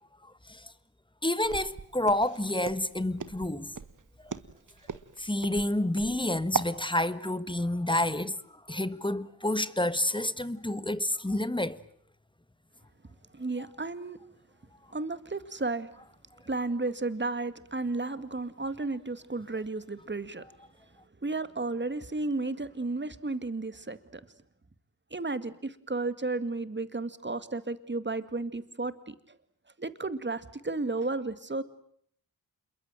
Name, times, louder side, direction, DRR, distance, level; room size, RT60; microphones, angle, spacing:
voice 1, 0.2-0.7 1.2-3.7 4.2-4.3 5.2-8.4 8.7-11.8, left 1 dB, 10° left, 1.6 m, -29 dB
Walk footsteps, 1.4-6.8, right 6 dB, 50° right, 1.5 m, -37 dB
voice 2, 13.3-14.2 14.9-15.9 16.5-20.5 21.2-24.2 25.1-29.1 29.8-31.6, right 3 dB, 30° right, 2.2 m, -33 dB
27.5 x 22.5 x 9.1 m
cardioid pair, 55°, 38 cm